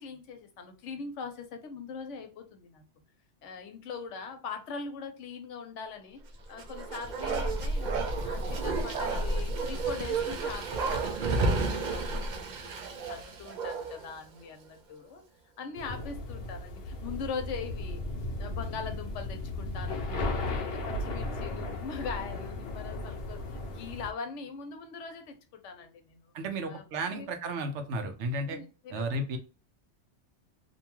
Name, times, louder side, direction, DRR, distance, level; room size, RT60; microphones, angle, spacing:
voice 1, 0.0-2.8 3.4-6.2 6.5-7.9 8.2-15.2 15.6-18.0 18.4-26.3 26.7-27.3 28.5-29.0, left 5 dB, 85° left, 1.0 m, -41 dB
Bark, 6.5-14.1 14.4-14.5, right 3 dB, 55° right, 0.5 m, -31 dB
sound 1, 15.7-24.1, left 2 dB, 60° left, 0.8 m, -35 dB
voice 2, 26.3-28.6 28.9-29.4, right 1 dB, 80° right, 0.9 m, -33 dB
2.6 x 2.2 x 2.9 m
omnidirectional pair, 1.2 m